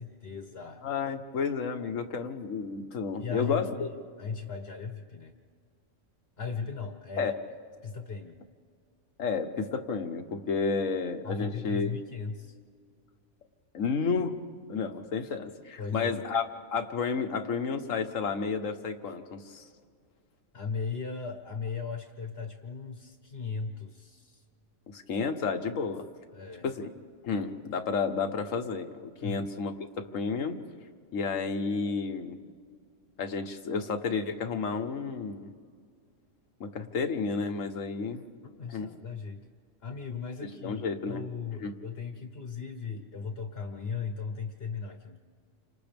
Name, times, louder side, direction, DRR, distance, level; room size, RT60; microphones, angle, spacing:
voice 1, 0.0-0.8 3.2-5.3 6.4-7.3 7.8-8.4 11.2-12.6 15.8-16.2 20.5-24.4 26.3-26.7 29.2-29.5 38.4-39.4 39.8-45.2, left 5 dB, 50° left, 5 dB, 1.4 m, -37 dB
voice 2, 0.8-3.9 7.2-7.4 9.2-11.9 13.7-14.4 14.7-19.7 24.9-26.0 26.6-26.9 27.2-30.6 31.1-32.4 33.2-35.5 36.6-38.2 38.7-38.9 40.6-41.2 41.6-41.7, left 5 dB, 75° left, 7 dB, 1.5 m, -31 dB
30.0 x 26.0 x 3.5 m, 2.1 s
omnidirectional pair, 1.3 m